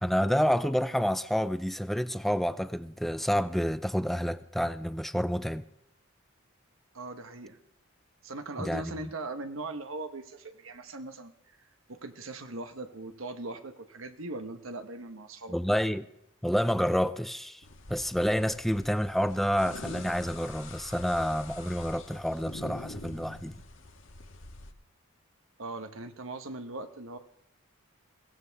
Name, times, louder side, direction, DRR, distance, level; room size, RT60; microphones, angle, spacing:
voice 1, 0.0-5.6 8.6-9.1 15.5-16.1 16.4-17.6 17.9-23.5, equal, ahead, 0.5 m, -29 dB
voice 2, 6.9-7.6 8.2-11.3 11.9-15.5 25.6-27.2, right 2 dB, 75° right, 1.2 m, -40 dB
sound 1, 17.6-24.7, left 2 dB, 65° left, 1.5 m, -45 dB
22.0 x 17.0 x 3.5 m
head